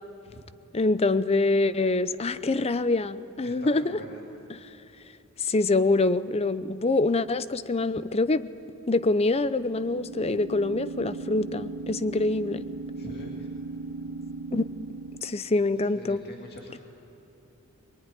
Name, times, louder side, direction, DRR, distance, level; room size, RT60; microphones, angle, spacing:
voice 1, 0.7-4.0 4.5-4.6 5.5-8.5 8.9-12.6 14.5-14.7 15.2-16.2, left 2 dB, 30° left, 14 dB, 0.6 m, -25 dB
sound 1, 2.4-3.0 9.1-15.2, right 3 dB, 70° right, 1.4 m, -38 dB
voice 2, 3.4-4.2 13.0-13.5 15.9-16.8, left 1 dB, 45° left, 0 dB, 2.1 m, -43 dB
23.5 x 21.0 x 9.9 m, 3.0 s
head